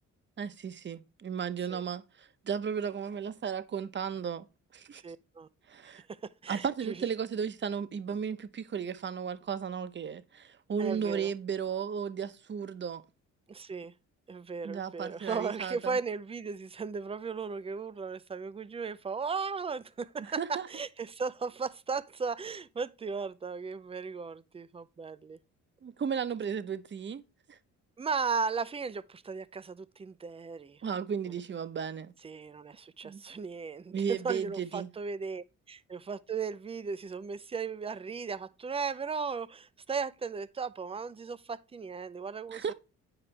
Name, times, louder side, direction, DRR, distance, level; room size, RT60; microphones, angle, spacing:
voice 1, 0.4-4.4 4.7-5.0 5.7-6.0 6.5-13.0 14.6-16.0 20.4-20.7 25.8-27.2 27.5-27.6 30.8-32.1 33.0-33.2 33.9-34.9 42.5-42.7, right 7 dB, 40° right, 0.8 m, -34 dB
voice 2, 5.0-5.5 6.1-7.0 10.8-11.3 13.5-13.9 14.3-25.4 28.0-30.8 32.2-42.6, right 5 dB, 20° right, 0.5 m, -36 dB
9.9 x 4.9 x 3.3 m
cardioid pair, 90°, 30 cm